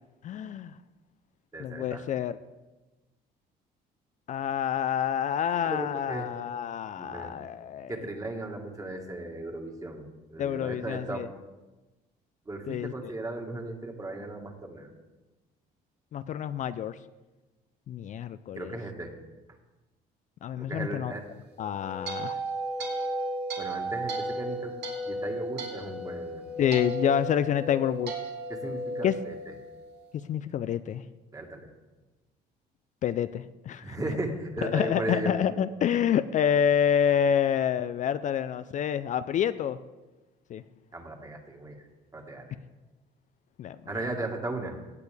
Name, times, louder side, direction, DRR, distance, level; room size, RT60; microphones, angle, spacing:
voice 1, 0.2-0.7 1.6-2.4 4.3-7.9 10.4-11.3 12.7-13.1 16.1-17.0 17.9-18.7 20.4-21.1 21.6-22.4 26.6-28.1 29.0-29.1 30.3-31.0 33.0-34.0 34.6-39.8 40.5-40.6 43.6-43.8, left 9 dB, 45° left, 13 dB, 0.4 m, -28 dB
voice 2, 1.5-2.0 5.6-6.3 7.0-7.4 7.9-11.4 12.4-14.9 18.5-19.1 20.6-21.2 22.8-22.9 23.6-24.7 25.0-26.5 28.5-29.5 31.3-31.7 33.8-35.4 40.9-41.8 42.1-42.5 43.9-44.8, right 2 dB, 20° right, 3 dB, 1.7 m, -36 dB
sound 1, 21.5-29.9, right 1 dB, 80° right, 2.5 m, -34 dB
16.5 x 8.3 x 3.4 m, 1.1 s
cardioid pair, 110°, 17 cm